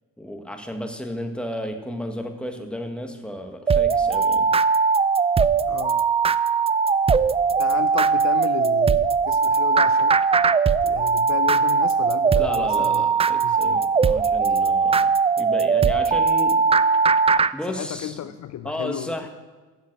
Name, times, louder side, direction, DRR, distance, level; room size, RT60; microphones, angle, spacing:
voice 1, 0.2-4.5 12.3-17.0 17.5-18.2 18.6-19.3, equal, 5° left, 5 dB, 1.6 m, -33 dB
sound 1, 3.7-17.5, right 5 dB, 20° right, 0.3 m, -20 dB
voice 2, 5.7-6.0 7.6-10.2 10.8-13.0 13.4-13.8 17.7-19.1, left 11 dB, 55° left, 12 dB, 0.5 m, -33 dB
9.2 x 7.3 x 7.5 m, 1.3 s
supercardioid pair, 65°, 34 cm